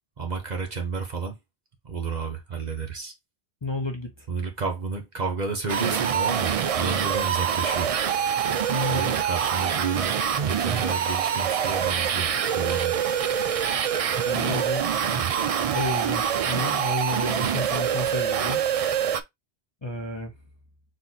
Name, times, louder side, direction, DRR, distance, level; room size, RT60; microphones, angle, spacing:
voice 1, 0.2-1.4 1.8-3.1 4.3-7.9 8.9-10.2 10.4-13.0, right 4 dB, 45° right, 1.0 m, -31 dB
voice 2, 3.6-4.1 8.7-9.1 14.2-14.8 15.7-18.6 19.8-20.3, left 2 dB, 30° left, 0.7 m, -31 dB
sound 1, 5.7-19.2, right 8 dB, 60° right, 0.3 m, -25 dB
4.3 x 2.6 x 3.9 m
omnidirectional pair, 1.1 m